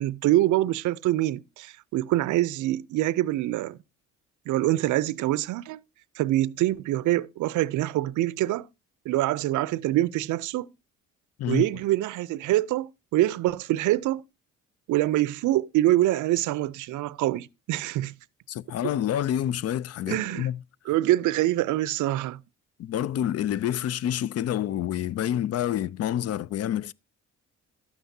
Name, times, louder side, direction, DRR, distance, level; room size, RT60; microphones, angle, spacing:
voice 1, 0.0-3.8 4.5-5.8 6.2-8.7 9.1-10.7 11.5-14.2 14.9-18.1 20.1-20.5 20.9-22.4, right 15 dB, 80° right, 0.5 m, -25 dB
voice 2, 18.5-20.6 22.8-26.9, left 11 dB, 55° left, 0.4 m, -28 dB
12.0 x 9.2 x 2.7 m
cardioid pair, 90°, 30 cm